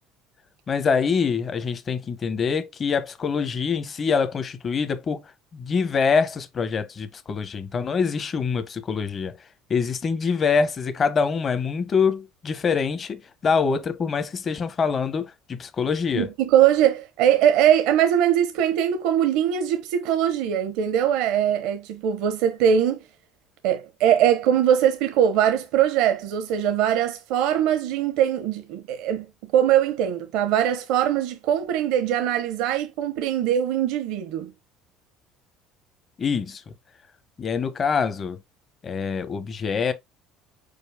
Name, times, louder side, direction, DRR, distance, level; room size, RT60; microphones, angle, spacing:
voice 1, 0.7-9.4 9.7-16.3 36.2-36.6 37.4-38.4 38.8-39.9, left 5 dB, 35° left, 0.9 m, -25 dB
voice 2, 16.1-23.0 23.6-34.5, right 10 dB, 75° right, 0.8 m, -21 dB
5.2 x 4.5 x 2.2 m
supercardioid pair, 90°, 0 cm